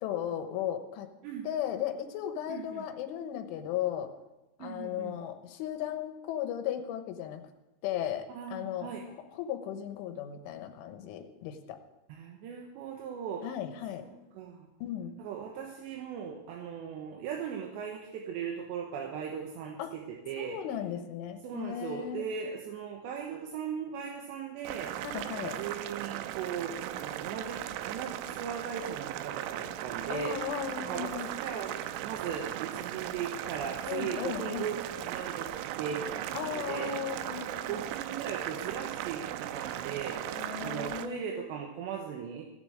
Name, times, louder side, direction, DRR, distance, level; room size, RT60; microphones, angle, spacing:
voice 1, 0.0-1.1 1.5-4.1 4.6-7.5 7.8-8.9 9.3-11.8 13.4-14.0 14.8-15.2 19.8-20.0 20.4-22.3 25.0-25.6 30.1-31.3 33.9-34.7 36.3-37.8 40.3-41.3, left 10 dB, 75° left, 7 dB, 3.4 m, -36 dB
voice 2, 2.5-2.8 4.6-5.2 8.3-9.0 12.1-13.5 14.0-14.7 15.2-20.6 21.4-24.9 25.3-30.4 30.8-34.8 35.1-37.0 37.7-42.4, right 7 dB, 75° right, 1 dB, 3.0 m, -38 dB
Boiling, 24.6-41.1, right 12 dB, 90° right, 3.3 m, -37 dB
17.0 x 6.9 x 8.1 m, 1.0 s
omnidirectional pair, 5.9 m